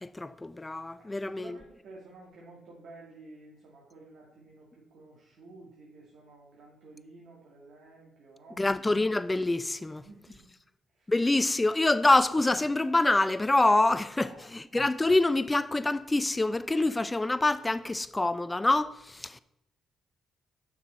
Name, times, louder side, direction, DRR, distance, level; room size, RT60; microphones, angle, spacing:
voice 1, 0.0-1.6 8.6-10.1 11.1-19.4, left 2 dB, 15° left, 0.4 m, -26 dB
voice 2, 1.0-8.6 10.0-10.5 10.9-11.1 14.2-14.5, right 2 dB, 70° right, 1.8 m, -51 dB
6.6 x 5.9 x 4.2 m
cardioid pair, 90°, 0 cm